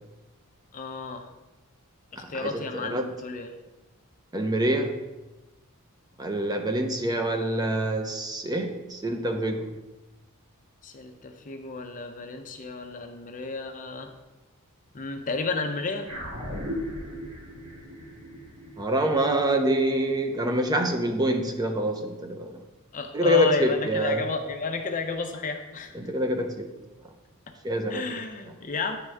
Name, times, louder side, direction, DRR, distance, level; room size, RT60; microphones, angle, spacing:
voice 1, 0.7-1.3 2.1-3.5 10.8-14.1 14.9-16.1 22.9-25.9 27.9-29.0, left 4 dB, 35° left, 5 dB, 0.5 m, -32 dB
voice 2, 2.2-3.1 4.3-5.0 6.2-9.7 18.8-22.5 23.1-24.2 25.9-26.7 27.6-28.0, right 1 dB, 20° right, 4 dB, 0.5 m, -26 dB
sound 1, 16.1-20.7, equal, 90° right, 1.6 m, -38 dB
9.5 x 3.5 x 3.3 m, 1.1 s
head